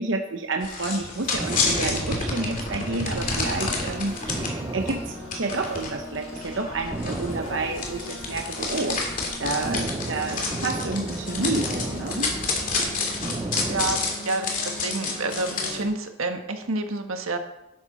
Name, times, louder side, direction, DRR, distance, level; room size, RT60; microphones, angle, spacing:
voice 1, 0.0-9.0 9.4-12.3, right 3 dB, 65° right, 3 dB, 0.9 m, -29 dB
sound 1, 0.6-4.5 4.9-5.0 5.3-15.8, left 3 dB, 40° left, 2.6 m, -29 dB
sound 2, 1.0-3.5 3.8-3.9 4.3-5.9 6.3-6.5 6.9-14.2, right 2 dB, 20° right, 0.4 m, -34 dB
sound 3, 1.6-15.8, left 1 dB, 80° left, 4.3 m, -39 dB
voice 2, 13.7-17.4, right 2 dB, 90° right, 5 dB, 1.5 m, -29 dB
12.5 x 11.0 x 4.1 m, 0.91 s
head